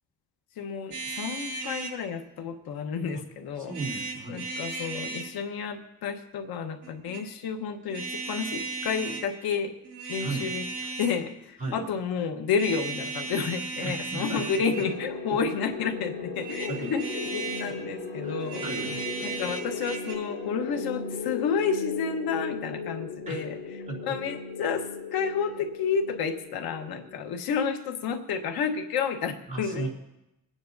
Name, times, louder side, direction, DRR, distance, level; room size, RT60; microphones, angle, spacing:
voice 1, 0.6-3.7 4.3-9.7 10.1-10.7 11.0-18.7 19.2-23.6 24.0-29.9, left 6 dB, 90° left, 6 dB, 1.2 m, -30 dB
sound 1, 0.9-2.0 3.7-5.3 6.8-7.2 7.9-9.3 9.8-11.2 12.5-15.0 16.3-17.7 18.4-20.1, right 3 dB, 60° right, 6.1 m, -36 dB
voice 2, 3.6-4.5 10.2-10.5 11.6-11.9 13.8-14.4 16.7-16.9 18.2-19.0 23.3-23.4 23.9-24.0 29.5-29.9, right 3 dB, 20° right, -4 dB, 3.0 m, -35 dB
sound 2, 14.7-27.5, left 5 dB, 35° left, 4.5 m, -37 dB
28.5 x 9.5 x 2.7 m, 0.92 s
cardioid pair, 165°, 36 cm